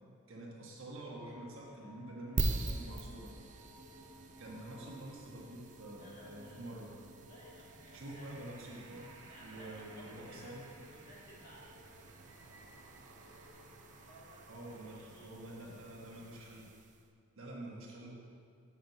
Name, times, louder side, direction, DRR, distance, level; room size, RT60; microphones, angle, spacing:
voice 1, 0.3-3.3 4.4-6.9 7.9-9.1 9.4-10.6 14.5-16.7 17.4-18.1, right 1 dB, 65° right, -3 dB, 1.4 m, -47 dB
sound 1, 0.8-16.4, right 1 dB, 85° right, 1.2 m, -57 dB
sound 2, 2.4-17.1, right 3 dB, 35° right, 0.4 m, -44 dB
voice 2, 5.9-6.8 7.3-8.4 9.2-10.6 10.9-11.8 14.0-15.4, equal, 45° left, -6 dB, 2.0 m, -58 dB
7.4 x 6.1 x 4.0 m, 2.2 s
head